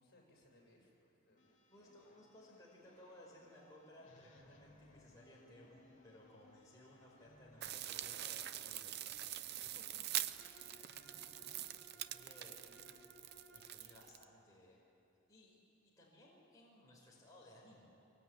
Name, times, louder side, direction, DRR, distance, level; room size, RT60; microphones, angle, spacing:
voice 1, 0.0-2.2 10.7-12.1 12.4-13.0, left 1 dB, 55° left, -2 dB, 7.7 m, -69 dB
sound 1, 1.4-7.9, left 2 dB, 40° left, 3.1 m, -66 dB
voice 2, 1.7-10.3 10.5-10.9 12.1-12.6 13.5-14.8 15.3-18.0, left 1 dB, 15° left, -5 dB, 5.0 m, -61 dB
sound 2, 7.6-14.2, right 12 dB, 55° right, 0.7 m, -44 dB
Bowed string instrument, 10.3-13.9, right 1 dB, 70° right, 7.8 m, -63 dB
24.5 x 23.5 x 9.4 m, 2.8 s
head